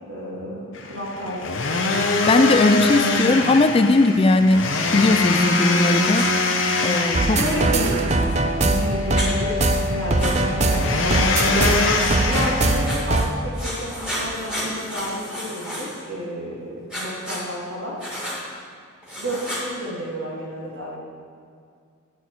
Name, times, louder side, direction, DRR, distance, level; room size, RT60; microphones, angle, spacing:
voice 1, 0.1-2.1 7.2-9.6 9.9-10.4 10.7-11.6 12.2-18.0 19.2-21.0, equal, 70° right, -4 dB, 2.4 m, -31 dB
sound 1, 0.7-12.8, left 3 dB, 65° left, 0.8 m, -24 dB
voice 2, 2.3-4.7 4.9-6.3 6.8-7.4, left 2 dB, 25° left, 9 dB, 0.3 m, -18 dB
Writing, 6.1-6.3 7.4-8.4 9.2-9.3 10.2-10.3 11.9-13.3 13.5-16.0 16.9-17.4 18.0-18.4 19.0-19.6, equal, 5° right, 1.9 m, -32 dB
sound 2, 7.1-13.3, right 2 dB, 30° right, 0.5 m, -21 dB
10.0 x 4.5 x 7.9 m, 2.2 s
head